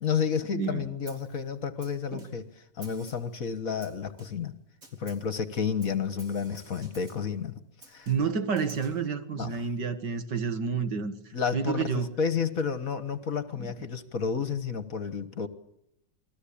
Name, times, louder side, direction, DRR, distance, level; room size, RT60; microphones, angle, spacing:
voice 1, 0.0-2.5 2.8-4.5 4.9-7.6 7.9-8.1 9.3-9.6 11.3-15.5, left 6 dB, 50° left, 1.7 m, -31 dB
voice 2, 0.5-0.8 2.1-2.3 8.1-12.1 13.6-13.7, right 6 dB, 65° right, 2.4 m, -30 dB
Snare drum, 1.1-1.4 1.8-2.5 2.8-3.4 3.8-4.5 4.8-5.3 5.8-7.3 7.8-9.1, right 2 dB, 45° right, 4.3 m, -53 dB
28.5 x 21.0 x 8.7 m
omnidirectional pair, 2.0 m